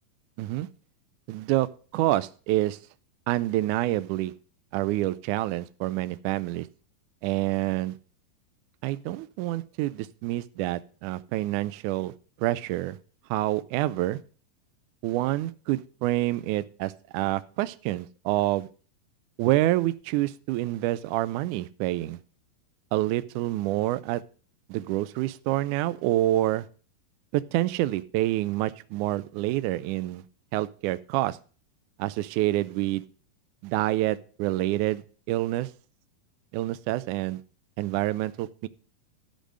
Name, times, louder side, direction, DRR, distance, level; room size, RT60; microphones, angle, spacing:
voice 1, 0.4-0.7 1.3-1.7 1.9-2.8 3.3-4.3 4.7-6.7 7.2-8.0 8.8-12.1 12.4-13.0 13.3-14.2 15.0-18.7 19.4-22.2 22.9-24.2 24.7-26.6 27.3-30.2 30.5-31.4 32.0-33.0 33.6-35.7 36.5-37.4 37.8-38.7, right 16 dB, 90° right, 13 dB, 1.7 m, -27 dB
12.0 x 5.2 x 6.3 m, 0.38 s
omnidirectional pair, 4.2 m